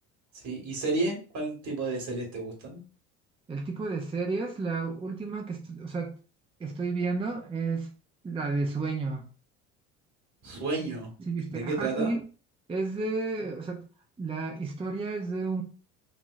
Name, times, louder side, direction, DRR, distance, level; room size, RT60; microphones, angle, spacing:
voice 1, 0.4-2.8 10.4-11.1 11.5-12.2, right 3 dB, 55° right, 0 dB, 2.0 m, -31 dB
voice 2, 3.5-6.1 6.6-7.9 8.2-9.2 10.8-10.9 11.2-12.2 12.7-13.8 14.2-15.6, right 3 dB, 15° right, 2 dB, 0.6 m, -31 dB
3.9 x 2.9 x 2.5 m, 0.37 s
supercardioid pair, 90°, 33 cm